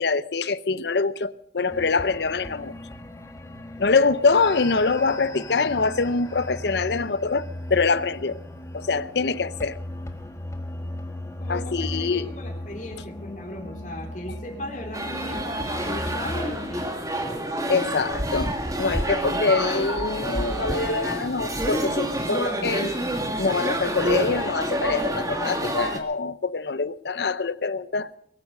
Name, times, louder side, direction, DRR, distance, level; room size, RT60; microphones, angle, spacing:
voice 1, 0.0-2.7 3.8-8.4 8.7-9.8 11.5-12.3 17.7-18.5 18.8-22.9 23.4-28.1, left 4 dB, 65° left, 0.7 m, -24 dB
sound 1, 1.7-16.9, left 1 dB, 15° left, 1.4 m, -37 dB
voice 2, 11.4-16.9, left 1 dB, 45° left, 3.9 m, -37 dB
sound 2, 14.9-26.0, right 1 dB, 20° right, 2.0 m, -28 dB
22.0 x 9.7 x 6.6 m
head